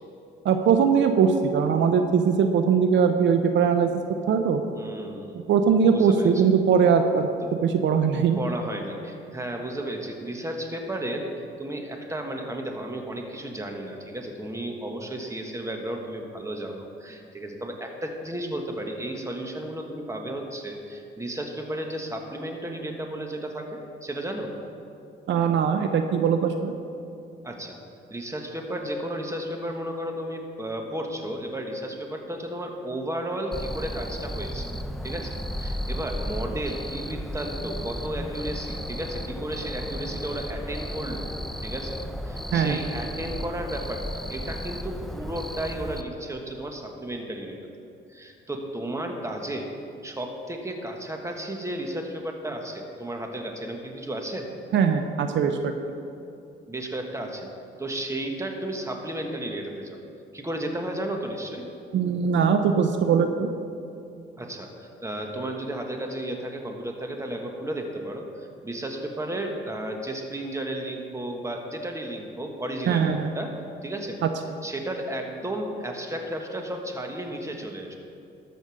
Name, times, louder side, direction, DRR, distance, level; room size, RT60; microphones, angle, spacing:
voice 1, 0.4-3.9 4.3-4.6 5.5-7.3 7.6-8.4 25.3-26.7 42.5-42.8 54.7-55.7 61.9-63.5 72.9-73.3, right 6 dB, 70° right, 6 dB, 0.7 m, -21 dB
voice 2, 4.7-5.4 5.9-6.3 7.4-7.5 8.4-24.5 27.4-27.8 28.1-34.7 35.0-41.3 41.6-42.0 42.2-47.6 48.1-49.7 50.0-54.5 56.7-57.5 57.8-60.0 60.3-61.7 64.4-73.5 73.8-74.2 74.6-78.0, right 1 dB, 15° right, 3 dB, 1.4 m, -33 dB
Cricket, 33.5-46.0, equal, ahead, 0.5 m, -34 dB
13.0 x 5.2 x 6.4 m, 2.6 s
cardioid pair, 90°, 20 cm